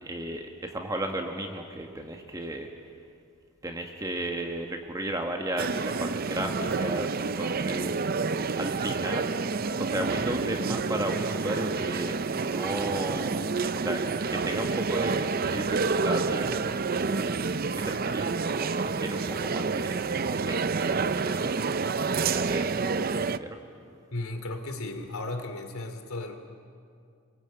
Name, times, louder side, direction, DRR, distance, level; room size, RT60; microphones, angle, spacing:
voice 1, 0.0-2.7 3.6-9.3 9.8-13.4 13.7-17.3 17.7-21.6 22.1-23.6, right 1 dB, 15° right, 3 dB, 1.5 m, -35 dB
sound 1, 5.6-23.4, right 4 dB, 45° right, 0.6 m, -28 dB
voice 2, 24.1-26.4, left 2 dB, 85° left, 7 dB, 2.9 m, -35 dB
27.0 x 22.5 x 9.0 m, 2.4 s
head